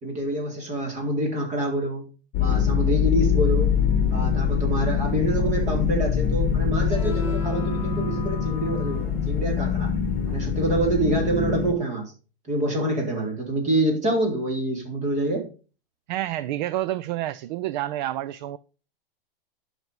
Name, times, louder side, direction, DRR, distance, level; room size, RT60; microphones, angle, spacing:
voice 1, 0.0-2.1 2.4-3.8 4.1-9.9 10.3-12.1 12.5-15.5, right 1 dB, 25° right, 3.9 m, -26 dB
sound 1, 2.3-11.7, left 7 dB, 30° left, 1.5 m, -24 dB
sound 2, 6.7-10.5, left 1 dB, 5° right, 4.6 m, -38 dB
voice 2, 16.1-18.6, right 14 dB, 50° right, 0.6 m, -29 dB
10.5 x 6.0 x 5.5 m
hypercardioid pair, 140°, 29 cm